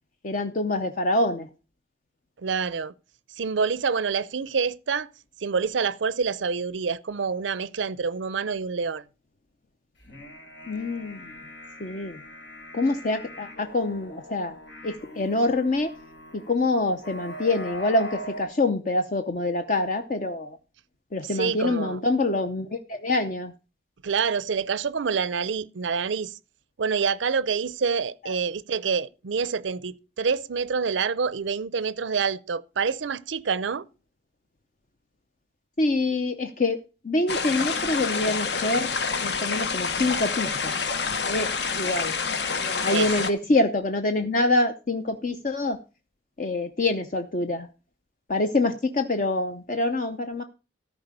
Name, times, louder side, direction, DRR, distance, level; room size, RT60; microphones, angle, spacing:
voice 1, 0.2-1.5 10.7-11.3 11.8-12.2 12.7-14.6 14.8-15.9 16.3-20.6 21.1-23.5 28.2-28.3 35.8-38.9 39.2-40.7 41.3-42.2 42.6-45.8 46.4-47.7 48.3-50.4, left 2 dB, 45° left, 0.7 m, -26 dB
voice 2, 2.4-2.9 3.3-5.1 5.4-9.0 21.3-22.0 24.0-26.3 26.8-33.9 42.9-43.1, right 5 dB, 85° right, 0.6 m, -27 dB
sound 1, 10.0-18.5, left 1 dB, 85° left, 4.3 m, -41 dB
sound 2, 37.3-43.3, left 5 dB, 65° left, 1.1 m, -27 dB
14.0 x 5.0 x 6.6 m
head